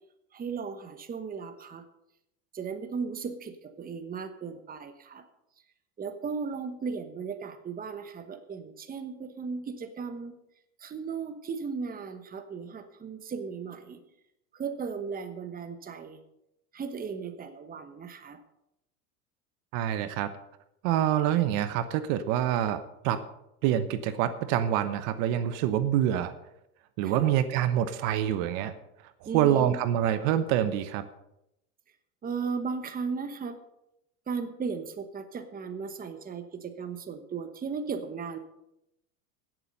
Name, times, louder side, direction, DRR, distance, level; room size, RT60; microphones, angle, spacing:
voice 1, 0.3-1.8 2.5-5.3 6.0-10.4 10.8-14.0 14.5-16.2 16.7-18.4 27.0-27.3 29.2-29.8 32.2-33.6 34.3-38.4, right 5 dB, 20° right, 8 dB, 1.1 m, -36 dB
voice 2, 19.7-20.3 20.8-23.2 23.6-26.3 27.0-28.7 29.3-31.0, right 11 dB, 60° right, 12 dB, 1.1 m, -26 dB
16.5 x 7.5 x 5.4 m, 0.84 s
supercardioid pair, 115°, 45 cm